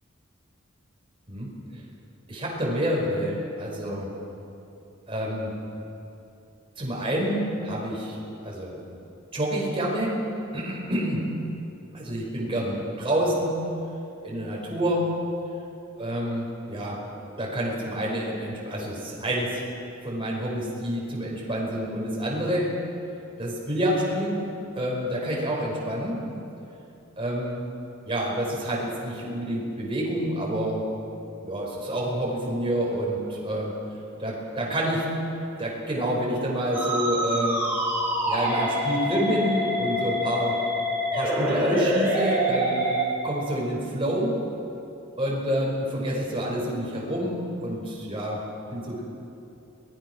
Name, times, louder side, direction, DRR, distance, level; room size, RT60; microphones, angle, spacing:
voice 1, 2.3-4.1 5.1-5.5 6.8-8.1 8.4-8.8 9.3-10.2 10.5-11.3 11.9-13.6 14.2-15.1 16.0-17.0 17.4-19.6 20.0-22.7 23.4-24.4 24.7-26.2 27.2-27.6 28.0-30.8 31.4-33.7 34.2-35.0 35.6-37.6 38.3-40.5 41.1-42.9 43.2-44.4 45.2-48.4 48.7-49.0, equal, 25° right, -3 dB, 5.5 m, -28 dB
Musical instrument, 36.7-43.1, equal, 10° right, 5.9 m, -26 dB
24.0 x 19.5 x 6.3 m, 2.8 s
head